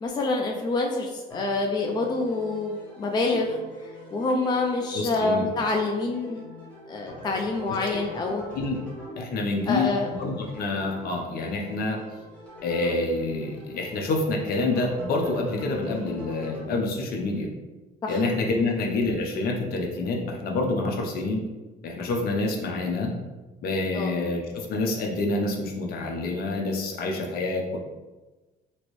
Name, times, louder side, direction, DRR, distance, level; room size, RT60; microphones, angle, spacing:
voice 1, 0.0-3.6 4.1-6.4 6.9-8.4 9.7-10.1 18.0-18.2 18.6-18.7 23.9-24.2, left 3 dB, 25° left, 1 dB, 0.4 m, -26 dB
sound 1, 1.3-16.7, left 1 dB, 10° left, 1.1 m, -43 dB
voice 2, 4.9-5.4 7.7-7.8 8.5-8.8 9.2-12.0 12.6-17.5 18.1-21.4 21.8-23.1 23.6-27.8, left 2 dB, 65° left, 1 dB, 0.6 m, -27 dB
3.0 x 2.6 x 3.0 m, 1.2 s
cardioid pair, 110°, 17 cm